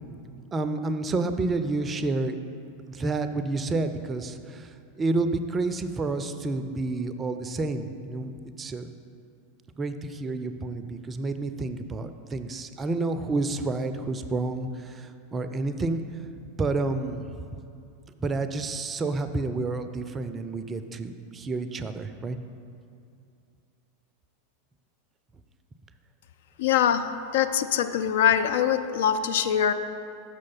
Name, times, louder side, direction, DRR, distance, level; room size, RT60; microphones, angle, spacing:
voice 1, 0.5-2.4 2.9-4.7 5.0-8.3 8.6-8.9 9.8-16.0 16.6-17.4 18.2-22.4, right 3 dB, 20° right, 9 dB, 0.4 m, -29 dB
voice 2, 26.6-27.0 27.3-29.7, left 9 dB, 60° left, 10 dB, 0.3 m, -23 dB
6.4 x 6.3 x 5.5 m, 2.5 s
figure-of-eight pair, 85°, 0 cm